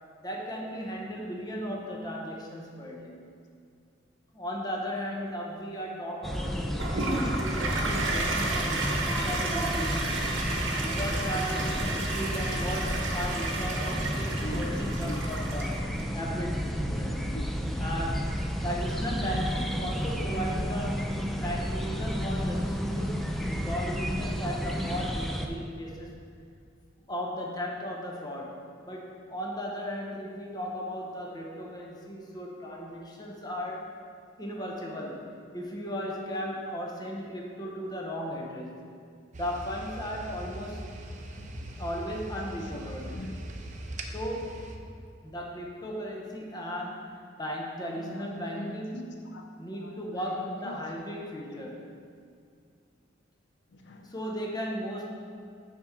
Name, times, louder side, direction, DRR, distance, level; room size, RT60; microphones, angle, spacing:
voice 1, 0.2-3.3 4.3-10.3 10.8-15.8 16.1-17.3 17.8-18.4 18.6-26.3 27.1-33.9 34.4-38.9 39.3-40.9 41.8-43.3 44.1-44.6 45.2-49.1 49.6-51.9 54.1-55.1, equal, 20° left, -1 dB, 0.8 m, -36 dB
sound 1, 6.2-25.5, equal, ahead, 0.4 m, -31 dB
Toilet flush, 6.8-16.0, right 2 dB, 80° right, 0.9 m, -32 dB
voice 2, 14.4-15.2 17.3-17.8 41.3-41.5 42.4-43.4 48.0-50.9 53.7-54.2, left 1 dB, 65° left, 3 dB, 0.5 m, -43 dB
sound 2, 39.3-44.8, right 1 dB, 40° right, 0.6 m, -41 dB
6.1 x 4.5 x 5.8 m, 2.4 s
head